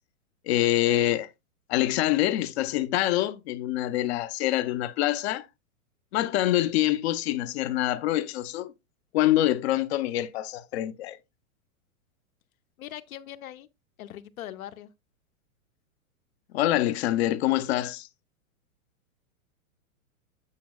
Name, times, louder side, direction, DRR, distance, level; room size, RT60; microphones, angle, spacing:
voice 1, 0.5-1.3 1.7-5.5 6.1-8.7 9.1-11.2 16.5-18.1, left 14 dB, 50° left, 0.8 m, -25 dB
voice 2, 12.8-13.7 14.0-14.9, left 12 dB, 75° left, 0.9 m, -41 dB
8.5 x 8.2 x 2.3 m
hypercardioid pair, 135°, 42 cm